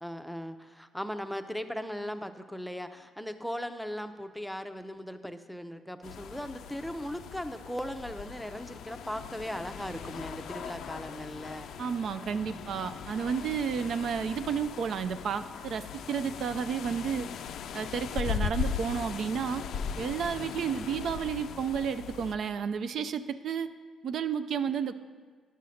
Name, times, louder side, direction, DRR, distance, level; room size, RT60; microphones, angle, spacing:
voice 1, 0.0-11.7 20.7-20.8, equal, ahead, 8 dB, 0.6 m, -38 dB
sound 1, 6.0-22.4, left 7 dB, 75° left, 0.4 m, -39 dB
voice 2, 11.8-17.3 17.7-19.6 20.0-23.7 24.0-25.0, right 7 dB, 65° right, 10 dB, 0.4 m, -31 dB
10.5 x 5.6 x 6.3 m, 1.5 s
cardioid pair, 90°, 0 cm